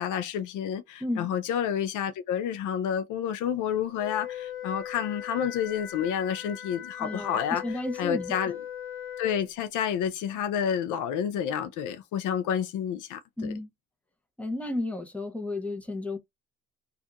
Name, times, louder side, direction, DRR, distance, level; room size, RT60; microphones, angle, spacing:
voice 1, 0.0-7.6 8.0-8.6 9.2-13.5, left 8 dB, 85° left, 0.6 m, -29 dB
Wind instrument woodwind instrument, 4.0-9.5, left 10 dB, 40° left, 1.2 m, -39 dB
voice 2, 7.0-8.4 13.4-13.7 14.4-16.2, left 2 dB, 5° left, 0.9 m, -32 dB
2.6 x 2.5 x 3.5 m
cardioid pair, 90°, 30 cm